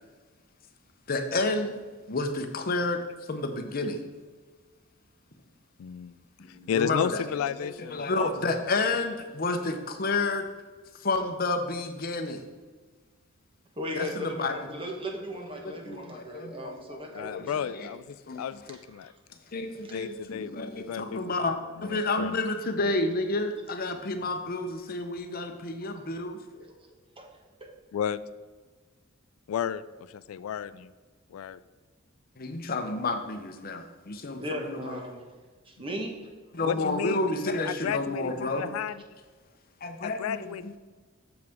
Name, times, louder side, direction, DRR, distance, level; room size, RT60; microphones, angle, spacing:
voice 1, 1.1-1.8 2.1-4.0 6.4-10.5 11.0-12.5 14.0-14.8 15.8-17.4 17.7-17.9 18.3-18.6 19.5-26.6 32.4-35.0 36.5-38.7 39.8-40.8, left 2 dB, 45° left, 6 dB, 0.7 m, -30 dB
voice 2, 5.8-6.1 6.7-8.6 17.1-19.1 19.9-22.4 27.9-28.2 29.5-29.8 30.1-30.9 31.3-31.6 36.6-37.3 37.6-39.0 40.0-40.8, left 8 dB, 85° left, 15 dB, 0.3 m, -33 dB
voice 3, 13.8-17.7 18.7-19.1 19.8-20.0 26.6-26.7 27.2-27.3 27.6-27.7 34.4-35.3 35.6-36.3, equal, 25° right, 2 dB, 1.1 m, -37 dB
8.0 x 7.1 x 3.5 m, 1.4 s
head